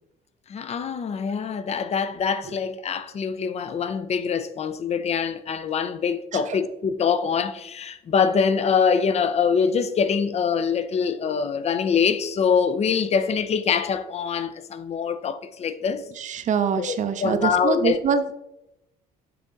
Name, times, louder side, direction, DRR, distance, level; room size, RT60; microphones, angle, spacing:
voice 1, 0.5-16.0 16.8-18.0, left 6 dB, 40° left, 0.6 m, -24 dB
voice 2, 16.2-18.3, right 7 dB, 45° right, 0.6 m, -25 dB
7.6 x 3.8 x 3.9 m
cardioid pair, 110°, 17 cm